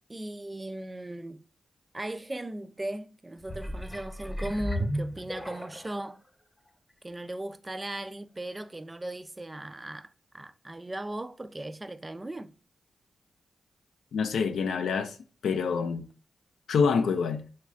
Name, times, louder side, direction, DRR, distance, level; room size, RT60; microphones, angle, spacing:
voice 1, 0.1-1.5 1.9-6.2 7.0-10.1 10.3-12.5, right 1 dB, 25° right, 0.3 m, -37 dB
sound 1, 3.4-6.0 6.7-6.8, equal, 10° left, 0.6 m, -34 dB
voice 2, 14.1-15.2 15.4-16.1 16.7-17.5, left 5 dB, 85° left, 0.4 m, -26 dB
3.1 x 2.3 x 3.5 m
cardioid pair, 60°, 0 cm